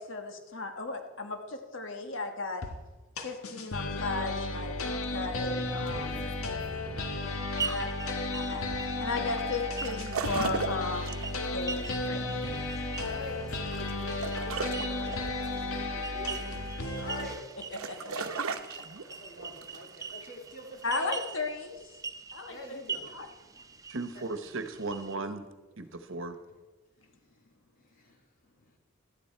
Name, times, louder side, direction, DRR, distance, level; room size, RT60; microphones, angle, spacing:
voice 1, 0.0-2.6 3.2-4.7 5.1-6.1 7.6-7.9 8.3-8.7 9.0-11.2 11.5-12.2 17.7-18.5 20.8-21.8 22.3-22.8 23.1-23.3, left 3 dB, 60° left, 5 dB, 1.4 m, -35 dB
sound 1, 2.6-2.7 3.2-17.3, left 2 dB, 90° left, 1.6 m, -34 dB
voice 2, 5.8-7.0 13.0-17.4 19.0-21.1 22.5-23.2 23.6-23.7 27.8-28.2, left 1 dB, 40° left, 0 dB, 3.0 m, -46 dB
sound 2, 7.0-25.2, right 5 dB, 15° right, 0.6 m, -43 dB
sound 3, 8.2-21.3, right 4 dB, 85° right, 0.9 m, -38 dB
voice 3, 23.9-25.4 25.8-26.4, right 3 dB, 65° right, 9 dB, 1.2 m, -36 dB
17.0 x 12.5 x 4.6 m, 1.2 s
head